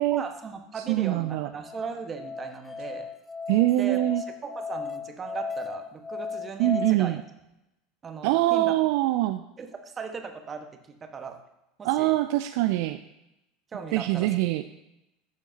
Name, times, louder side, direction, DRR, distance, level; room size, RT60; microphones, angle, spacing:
voice 1, 0.1-3.1 3.8-7.1 8.0-8.7 9.6-10.7 11.0-11.4 11.8-12.1 13.7-14.3, right 5 dB, 25° right, 5 dB, 1.3 m, -38 dB
voice 2, 0.8-1.5 3.5-4.2 6.6-7.2 8.2-9.4 11.8-13.0 13.9-14.6, right 16 dB, 60° right, 9 dB, 0.3 m, -24 dB
Musical instrument, 1.2-6.9, left 5 dB, 20° left, 0.5 m, -36 dB
14.5 x 7.1 x 2.8 m, 0.88 s
figure-of-eight pair, 75°, 0 cm